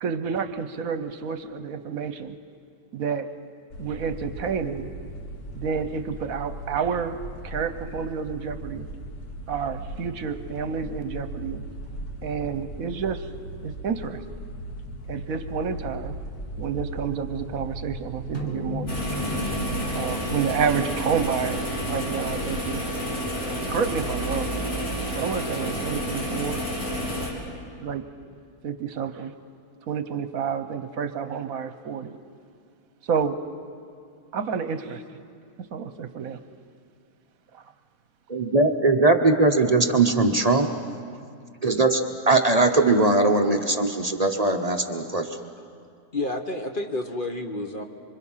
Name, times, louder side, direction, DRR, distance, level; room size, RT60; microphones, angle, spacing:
voice 1, 0.0-2.4 2.9-3.3 3.8-4.9 5.5-8.9 9.5-11.6 12.2-13.3 13.6-14.2 15.1-16.1 16.6-18.9 19.9-22.9 23.4-24.7 25.1-26.7 27.8-28.0 28.6-29.3 29.9-32.2 33.0-33.4 34.3-35.2 35.7-36.4 37.5-37.6, right 6 dB, 70° right, 10 dB, 1.3 m, -29 dB
sound 1, 3.7-22.8, equal, 90° left, 1.8 m, -38 dB
sound 2, 18.3-23.0, left 3 dB, 15° left, 2.4 m, -36 dB
sound 3, 18.9-27.3, equal, 75° left, 4.7 m, -30 dB
voice 2, 38.3-40.7 41.6-45.3, right 2 dB, 30° right, 4 dB, 0.9 m, -20 dB
voice 3, 46.1-47.8, left 2 dB, 40° left, 4 dB, 1.2 m, -30 dB
26.0 x 25.0 x 5.7 m, 2.3 s
omnidirectional pair, 1.6 m